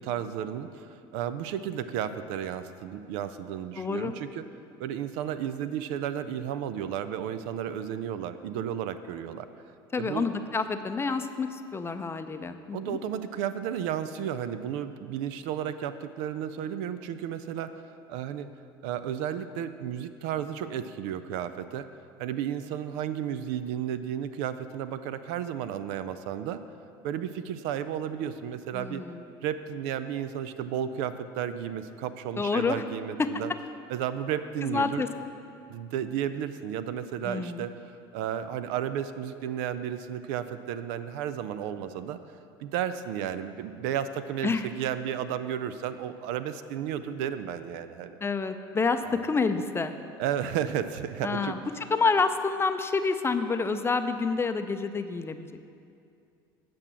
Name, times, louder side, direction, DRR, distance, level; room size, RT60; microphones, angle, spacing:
voice 1, 0.0-4.4 4.8-9.5 10.0-10.3 12.7-18.5 18.8-21.9 22.2-26.6 27.0-29.0 29.4-33.5 33.9-35.1 35.7-37.8 38.1-42.2 42.6-48.2 49.0-49.2 50.2-51.6, right 9 dB, 70° right, 12 dB, 0.4 m, -33 dB
voice 2, 3.7-4.1 9.9-13.0 28.7-29.2 32.4-32.8 33.2-33.3 34.6-35.1 37.2-37.7 44.4-44.7 48.2-49.9 51.2-51.6 51.9-55.7, left 4 dB, 20° left, 9 dB, 0.5 m, -28 dB
8.6 x 6.0 x 6.1 m, 2.5 s
hypercardioid pair, 80°, 12 cm